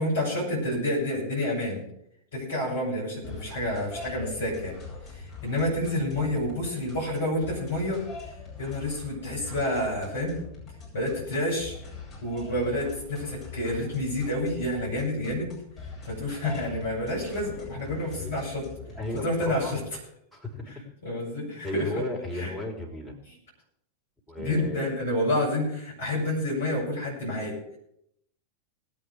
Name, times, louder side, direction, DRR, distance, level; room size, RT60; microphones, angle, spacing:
voice 1, 0.0-1.8 2.3-4.7 5.1-8.0 8.6-10.4 10.9-11.8 12.2-15.6 16.0-18.6 19.2-19.8 21.0-22.0 22.3-22.5 24.4-27.8, left 1 dB, 65° left, -3 dB, 7.3 m, -29 dB
sound 1, 3.2-19.9, left 4 dB, 30° left, 7.7 m, -43 dB
voice 2, 18.9-19.8 20.3-20.7 21.6-23.2 24.3-24.9, left 1 dB, 5° right, 1 dB, 3.7 m, -35 dB
20.0 x 8.7 x 4.9 m, 0.73 s
figure-of-eight pair, 90°, 0 cm